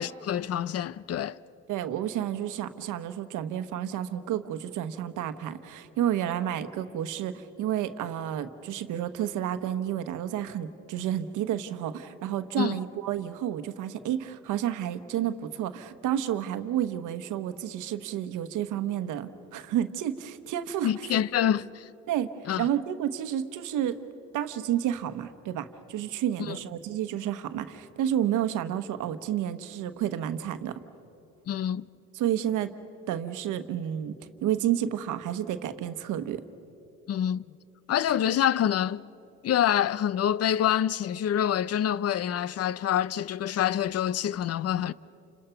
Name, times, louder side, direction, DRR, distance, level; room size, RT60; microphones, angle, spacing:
voice 1, 0.0-1.4 12.6-12.8 20.8-21.8 22.5-22.7 26.5-26.6 31.5-31.9 37.1-37.4 37.9-39.1 39.4-44.9, left 10 dB, 55° left, 0.6 m, -26 dB
voice 2, 1.7-21.1 22.1-22.3 22.6-24.0 24.3-30.7 32.1-32.7 33.1-34.1 34.4-36.4, right 10 dB, 90° right, 1.1 m, -30 dB
29.5 x 26.5 x 5.8 m
cardioid pair, 90°, 30 cm